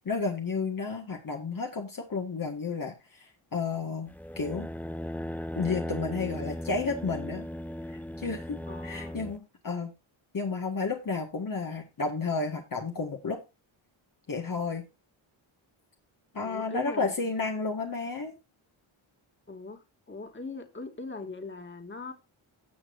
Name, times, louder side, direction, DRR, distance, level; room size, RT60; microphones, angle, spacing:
voice 1, 0.1-4.7 5.6-7.4 7.9-9.9 10.3-13.4 14.3-14.8 16.3-18.3, left 4 dB, 40° left, 1.9 m, -32 dB
sound 1, 4.1-9.4, left 1 dB, 5° left, 0.4 m, -37 dB
voice 2, 8.7-9.2 16.4-17.1 19.5-19.8 20.1-22.1, left 3 dB, 25° left, 2.5 m, -40 dB
16.5 x 6.1 x 2.6 m
cardioid pair, 90°, 49 cm